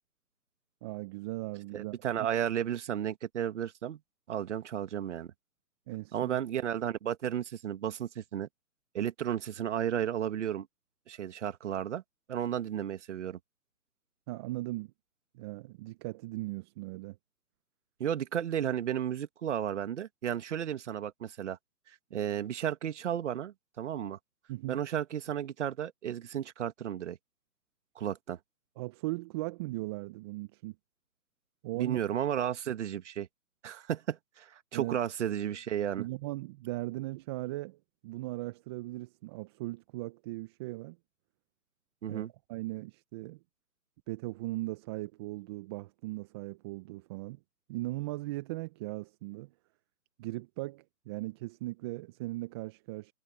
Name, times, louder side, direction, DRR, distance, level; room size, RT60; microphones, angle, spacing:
voice 1, 0.8-2.3 5.9-6.4 14.3-14.9 15.3-17.2 24.5-24.8 28.8-30.7 31.6-32.0 34.7-35.0 36.0-41.0 42.1-42.2 42.5-43.4 44.1-47.4 47.7-49.5 50.2-53.1, right 19 dB, 15° right, 0.9 m, -38 dB
voice 2, 1.7-4.0 4.3-5.3 6.1-8.5 8.9-10.7 11.1-12.0 12.3-13.4 18.0-21.6 21.9-24.2 24.7-27.2 28.0-28.4 31.8-33.3 33.6-36.1 42.0-42.3, right 9 dB, 45° right, 2.1 m, -33 dB
figure-of-eight pair, 140°, 49 cm